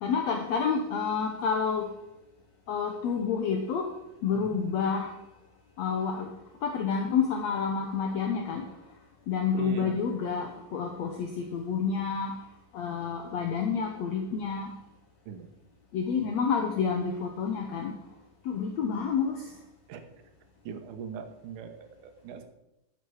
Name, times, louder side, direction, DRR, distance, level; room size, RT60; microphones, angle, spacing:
voice 1, 0.0-1.9 2.7-3.9 4.2-5.1 5.8-6.3 6.6-8.7 9.3-12.4 12.7-14.7 15.9-18.0 18.5-19.5, left 6 dB, 70° left, 3 dB, 1.9 m, -29 dB
voice 2, 4.3-4.7 9.6-10.0 15.3-15.5 16.2-16.3 19.9-20.0 20.7-22.4, right 7 dB, 75° right, 7 dB, 2.6 m, -40 dB
12.5 x 8.3 x 4.9 m, 0.88 s
omnidirectional pair, 3.9 m